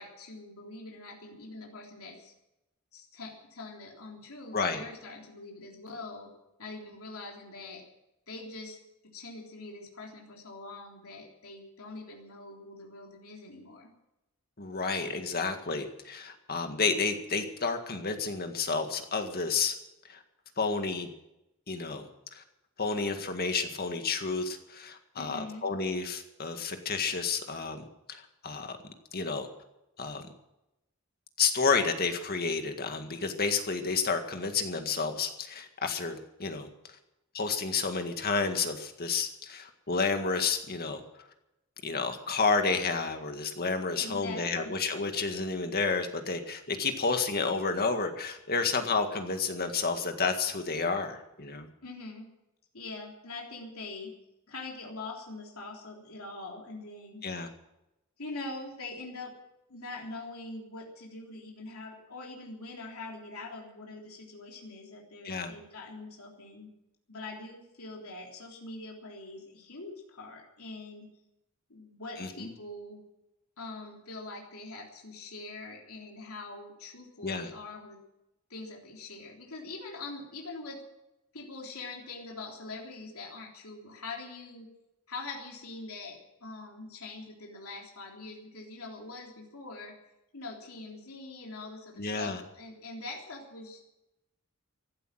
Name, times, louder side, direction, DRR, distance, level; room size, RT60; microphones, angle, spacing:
voice 1, 0.0-2.3 2.9-6.3 6.6-7.8 8.3-8.8 9.0-13.9 25.1-25.7 43.9-44.7 51.8-52.3 52.7-54.1 54.5-57.2 58.2-59.3 59.7-66.7 67.1-71.1 71.7-73.0 73.6-78.0 78.5-80.8 81.3-84.7 85.1-89.9 90.3-93.9, left 3 dB, 75° left, -1 dB, 3.5 m, -43 dB
voice 2, 4.5-4.8 14.6-19.7 20.1-20.2 20.6-21.1 21.7-22.4 22.8-28.8 29.1-29.5 30.0-30.2 31.4-36.7 37.3-41.0 41.8-51.7 57.2-57.5 65.2-65.5 72.2-72.5 77.2-77.5 92.0-92.4, left 4 dB, 45° left, 6 dB, 1.9 m, -30 dB
15.5 x 12.0 x 7.5 m, 0.90 s
head